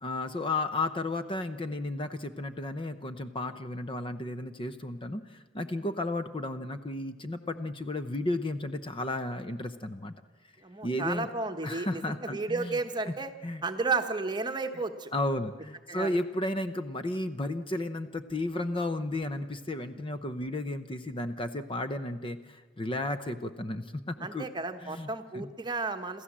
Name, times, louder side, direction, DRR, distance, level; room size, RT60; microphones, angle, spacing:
voice 1, 0.0-10.1 10.8-11.3 11.6-12.8 13.1-13.2 13.4-13.6 15.1-24.5 24.8-25.1 25.3-25.5, left 2 dB, 25° left, 10 dB, 0.8 m, -33 dB
voice 2, 10.6-13.3 13.6-15.1 15.9-16.2 24.2-26.2, right 3 dB, 25° right, 7 dB, 1.2 m, -33 dB
27.5 x 14.5 x 7.4 m, 1.4 s
head